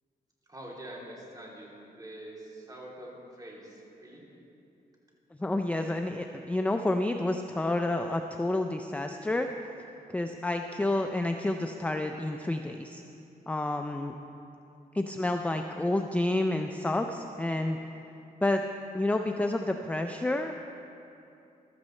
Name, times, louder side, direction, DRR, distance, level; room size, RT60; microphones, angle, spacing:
voice 1, 0.5-4.3, right 1 dB, 25° right, -4 dB, 3.1 m, -45 dB
voice 2, 5.4-9.5 10.1-13.0 13.5-14.1 14.9-17.8 18.4-18.6 18.9-20.5, left 2 dB, 10° left, 5 dB, 0.5 m, -29 dB
15.5 x 12.5 x 3.2 m, 2.8 s
cardioid pair, 75°, 17 cm